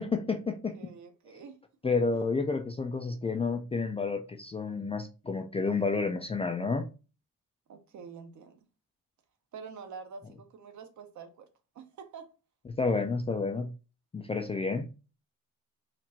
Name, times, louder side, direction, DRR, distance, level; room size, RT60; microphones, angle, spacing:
voice 1, 0.0-0.8 1.3-1.4 1.8-6.9 12.8-13.7 14.1-14.9, left 4 dB, 20° left, 0.3 m, -30 dB
voice 2, 0.7-1.6 1.8-2.2 7.7-8.6 9.5-11.5 11.7-12.3, right 5 dB, 55° right, 0.9 m, -47 dB
4.4 x 2.5 x 4.1 m
cardioid pair, 165°, 34 cm